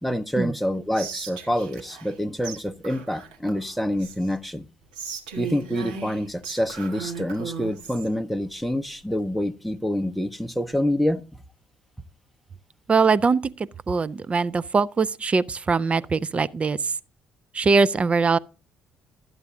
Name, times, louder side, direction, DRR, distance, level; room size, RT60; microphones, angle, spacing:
voice 1, 0.0-4.7 5.4-11.2, equal, ahead, 0.7 m, -27 dB
Whispering, 0.9-2.2 2.4-2.6 2.8-4.4 4.9-8.1, right 6 dB, 75° right, 1.6 m, -37 dB
voice 2, 12.9-17.0 17.5-18.4, right 4 dB, 30° right, 0.5 m, -22 dB
12.5 x 8.1 x 3.7 m
figure-of-eight pair, 50°, 4 cm